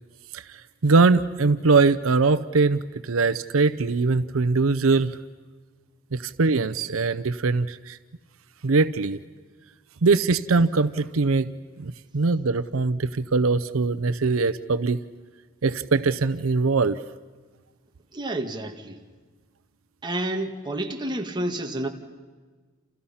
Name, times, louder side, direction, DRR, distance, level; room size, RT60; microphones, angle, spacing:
voice 1, 0.8-5.2 6.1-8.0 8.6-9.2 10.0-11.5 11.8-15.0 15.6-17.0, right 4 dB, 85° right, 14 dB, 0.7 m, -22 dB
voice 2, 18.1-19.0 20.0-21.9, right 1 dB, 20° right, 3 dB, 1.9 m, -29 dB
29.5 x 28.5 x 5.7 m, 1.4 s
head